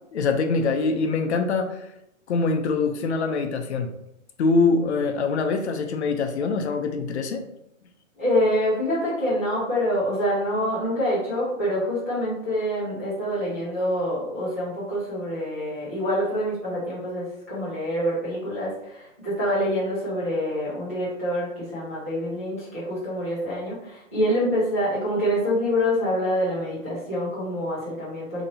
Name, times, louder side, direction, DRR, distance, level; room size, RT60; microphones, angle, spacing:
voice 1, 0.1-1.8 2.3-3.9 4.4-7.5, left 4 dB, 55° left, 6 dB, 0.6 m, -24 dB
voice 2, 8.2-28.4, equal, 15° right, -12 dB, 0.3 m, -26 dB
2.9 x 2.7 x 4.0 m, 0.81 s
hypercardioid pair, 155°, 40 cm